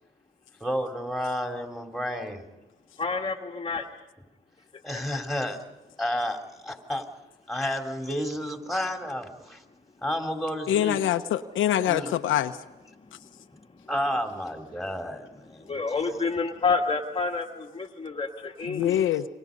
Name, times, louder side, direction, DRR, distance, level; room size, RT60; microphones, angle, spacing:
voice 1, 0.6-2.4 4.8-5.6 6.0-7.1 7.5-9.6 10.0-11.0 11.8-12.1 13.9-16.0, equal, ahead, 4 dB, 3.6 m, -31 dB
voice 2, 3.0-3.9 4.7-5.0 13.0-13.7 15.7-19.0, left 4 dB, 25° left, 1 dB, 1.7 m, -29 dB
voice 3, 10.7-12.6 18.7-19.2, left 11 dB, 80° left, 6 dB, 1.1 m, -24 dB
29.0 x 24.5 x 5.4 m, 1.0 s
cardioid pair, 90°, 20 cm